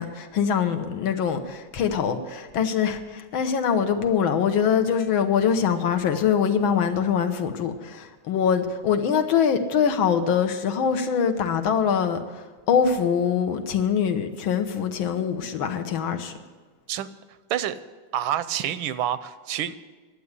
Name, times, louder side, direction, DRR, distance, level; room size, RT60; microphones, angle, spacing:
voice 1, 0.0-12.4 12.7-16.3, left 7 dB, 80° left, 1.7 m, -23 dB
voice 2, 18.1-19.8, right 11 dB, 80° right, 1.4 m, -27 dB
11.0 x 8.1 x 9.6 m
omnidirectional pair, 2.2 m